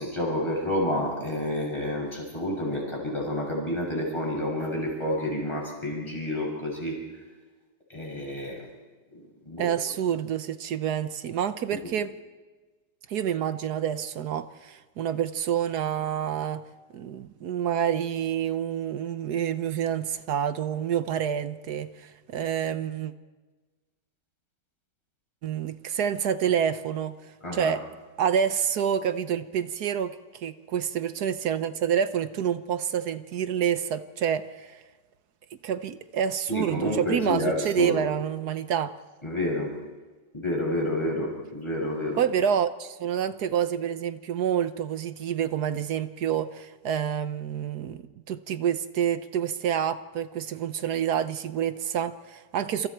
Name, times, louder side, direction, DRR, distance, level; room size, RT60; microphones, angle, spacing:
voice 1, 0.0-7.0 7.9-8.7 9.1-9.2 9.4-9.7 11.7-11.8 27.4-27.7 36.5-38.0 39.2-39.7 40.3-42.2, left 1 dB, 15° left, -2 dB, 6.9 m, -29 dB
voice 2, 9.6-12.2 13.1-16.6 16.9-23.1 25.4-27.1 27.5-27.8 28.2-34.8 35.6-38.9 42.2-52.9, right 8 dB, 60° right, 12 dB, 1.3 m, -28 dB
27.5 x 27.0 x 4.6 m, 1.3 s
omnidirectional pair, 2.0 m